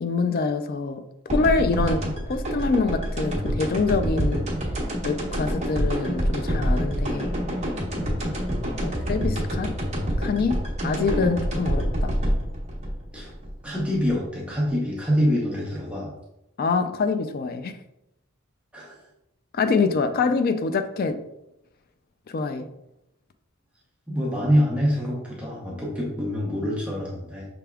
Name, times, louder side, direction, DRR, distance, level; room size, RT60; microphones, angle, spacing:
voice 1, 0.0-2.0 2.3-4.5 5.0-7.3 8.8-9.7 10.2-12.1 16.6-17.8 19.5-21.2 22.3-22.7, left 4 dB, 50° left, 9 dB, 0.4 m, -25 dB
sound 1, 1.3-14.1, equal, 35° right, 1.0 m, -27 dB
voice 2, 13.6-16.1 18.7-19.0 24.1-27.5, equal, 5° right, -4 dB, 0.7 m, -25 dB
5.8 x 3.4 x 2.3 m, 0.85 s
head